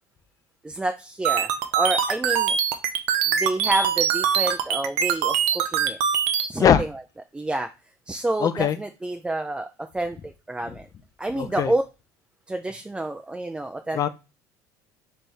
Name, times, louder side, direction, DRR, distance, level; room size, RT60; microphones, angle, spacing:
voice 1, 0.6-2.6 3.3-6.0 6.5-6.9 7.3-7.7 8.1-9.7 9.9-10.9 11.2-11.8 12.5-14.1, right 2 dB, 10° right, 5 dB, 0.4 m, -28 dB
sound 1, 1.2-6.5, right 8 dB, 80° right, 0.6 m, -23 dB
voice 2, 8.4-8.8 11.3-11.7 13.9-14.1, left 8 dB, 40° left, 12 dB, 0.6 m, -20 dB
3.4 x 3.3 x 4.2 m, 0.29 s
supercardioid pair, 90°, 9 cm